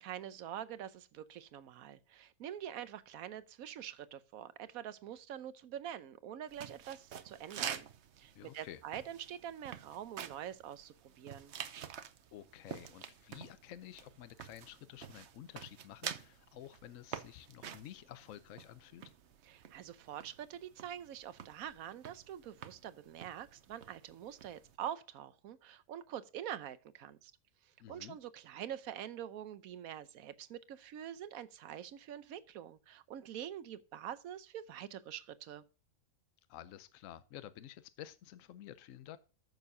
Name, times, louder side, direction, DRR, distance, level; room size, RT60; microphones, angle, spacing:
voice 1, 0.0-7.9 8.2-11.5 19.4-27.3 27.6-35.6, right 10 dB, 75° right, 1.2 m, -45 dB
sound 1, 6.5-24.8, right 8 dB, 55° right, 0.9 m, -48 dB
voice 2, 8.3-8.8 12.3-19.1 27.8-28.2 36.5-39.2, left 11 dB, 65° left, 1.0 m, -51 dB
14.0 x 6.7 x 2.7 m
omnidirectional pair, 1.5 m